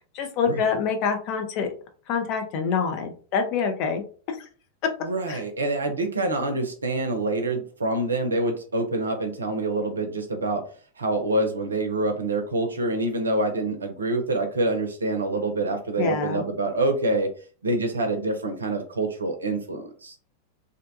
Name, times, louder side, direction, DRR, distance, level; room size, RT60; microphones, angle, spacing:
voice 1, 0.1-1.7 2.1-4.0 5.3-5.4 16.0-16.4, left 6 dB, 40° left, 4 dB, 0.5 m, -26 dB
voice 2, 5.0-10.6 11.0-17.3 17.6-20.1, right 2 dB, 75° right, 5 dB, 0.5 m, -26 dB
2.6 x 2.2 x 2.6 m, 0.41 s
figure-of-eight pair, 90°, 0 cm